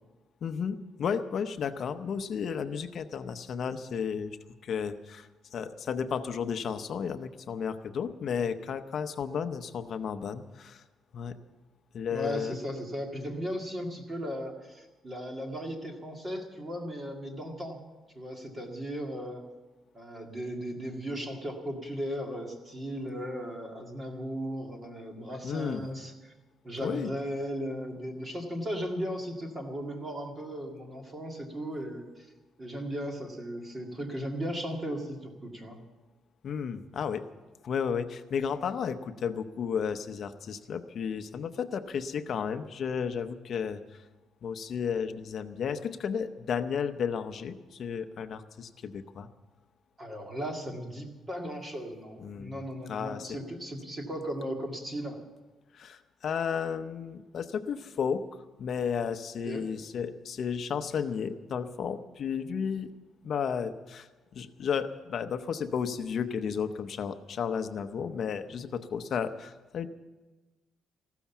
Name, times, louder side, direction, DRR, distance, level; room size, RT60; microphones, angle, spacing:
voice 1, 0.4-4.4 4.6-10.8 11.1-11.3 11.9-12.6 25.4-25.9 26.8-27.1 36.4-37.2 37.6-44.0 44.4-49.3 52.2-52.6 52.9-53.4 55.7-58.2 58.6-62.9 63.2-69.9, left 7 dB, 40° left, 9 dB, 0.8 m, -33 dB
voice 2, 12.1-17.8 18.1-19.4 19.9-26.3 26.6-32.3 32.6-35.8 50.0-55.2 59.5-59.6, equal, 20° right, 2 dB, 2.0 m, -36 dB
15.0 x 13.0 x 7.1 m, 1.2 s
cardioid pair, 180°, 0 cm